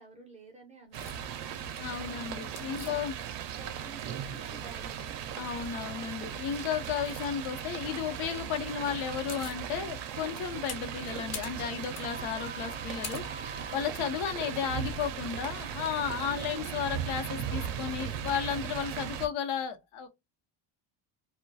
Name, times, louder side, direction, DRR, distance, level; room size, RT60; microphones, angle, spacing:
voice 1, 0.0-1.6 2.8-5.2, right 3 dB, 15° right, 0.5 m, -53 dB
sound 1, 0.9-1.2 2.6-3.7 3.9-4.9 5.4-5.8 6.5-7.3 8.8-8.9 9.0-9.6 10.1-13.8, left 4 dB, 35° left, 0.5 m, -44 dB
sound 2, 0.9-19.3, right 9 dB, 65° right, 0.5 m, -38 dB
voice 2, 1.7-3.2 5.4-20.1, left 8 dB, 85° left, 0.7 m, -34 dB
2.2 x 2.2 x 2.5 m
cardioid pair, 155°, 47 cm